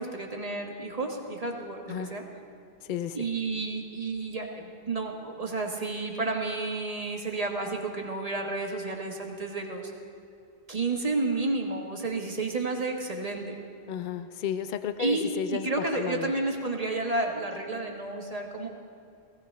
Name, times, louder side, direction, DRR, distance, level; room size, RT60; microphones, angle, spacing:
voice 1, 0.0-2.2 3.1-9.9 10.7-13.5 15.0-15.2 15.5-18.7, right 3 dB, 35° right, 1 dB, 1.4 m, -31 dB
voice 2, 2.8-3.2 13.9-16.3, left 8 dB, 55° left, 10 dB, 0.7 m, -33 dB
17.0 x 17.0 x 3.3 m, 2.4 s
omnidirectional pair, 1.1 m